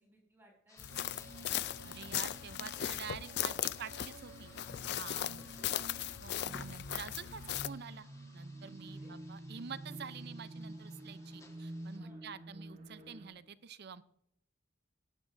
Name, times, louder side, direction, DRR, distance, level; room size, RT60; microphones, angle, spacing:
voice 1, 0.0-1.5 2.7-3.7 5.1-6.1 8.8-9.2 11.9-12.2, equal, 10° right, -3 dB, 6.0 m, -63 dB
sound 1, 0.7-12.0, left 3 dB, 15° left, 1.6 m, -62 dB
sound 2, 0.8-7.7, left 11 dB, 60° left, 0.4 m, -38 dB
sound 3, 0.9-13.3, right 1 dB, 40° right, 1.5 m, -49 dB
voice 2, 1.8-4.5 5.0-5.4 6.2-8.1 8.3-14.0, right 6 dB, 60° right, 15 dB, 0.6 m, -47 dB
18.0 x 11.0 x 2.6 m, 0.73 s
head